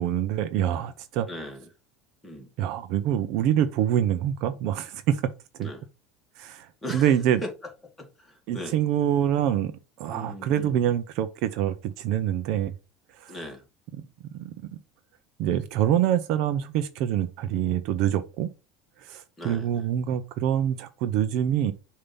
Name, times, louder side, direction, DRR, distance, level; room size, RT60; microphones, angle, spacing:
voice 1, 0.0-1.3 2.6-5.2 5.6-5.7 6.4-6.7 6.9-7.4 8.5-9.7 10.0-12.7 13.2-13.3 14.3-14.5 15.4-18.5 19.0-21.7, right 10 dB, 60° right, 0.6 m, -25 dB
voice 2, 1.3-1.7 2.2-2.5 5.6-5.9 6.8-7.5 8.0-8.7 10.1-10.9 13.3-13.6 19.4-19.9 21.6-21.7, left 1 dB, 10° left, 1.9 m, -39 dB
6.8 x 2.8 x 5.3 m
supercardioid pair, 140°, 0 cm